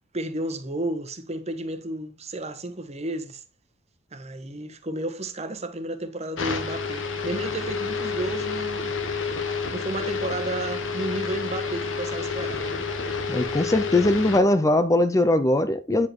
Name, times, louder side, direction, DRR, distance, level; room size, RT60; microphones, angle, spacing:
voice 1, 0.1-3.4 4.1-8.9 9.7-12.9, right 2 dB, 35° right, 1.2 m, -32 dB
sound 1, 6.4-14.4, left 5 dB, 80° left, 1.4 m, -29 dB
voice 2, 13.3-16.1, left 1 dB, 15° left, 0.5 m, -20 dB
9.7 x 4.9 x 4.5 m
head